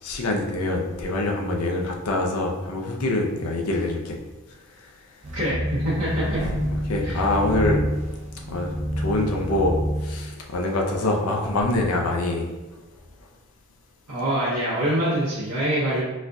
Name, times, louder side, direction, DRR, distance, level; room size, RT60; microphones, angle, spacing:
voice 1, 0.0-4.2 4.8-4.9 6.4-6.6 6.9-7.8 8.5-12.5, left 2 dB, 85° left, 1 dB, 0.5 m, -25 dB
sound 1, 5.2-10.2, equal, 30° right, 0.3 m, -28 dB
voice 2, 5.3-6.4 7.0-7.2 14.1-16.0, right 1 dB, 90° right, -9 dB, 0.8 m, -24 dB
4.1 x 2.3 x 2.6 m, 1.1 s
head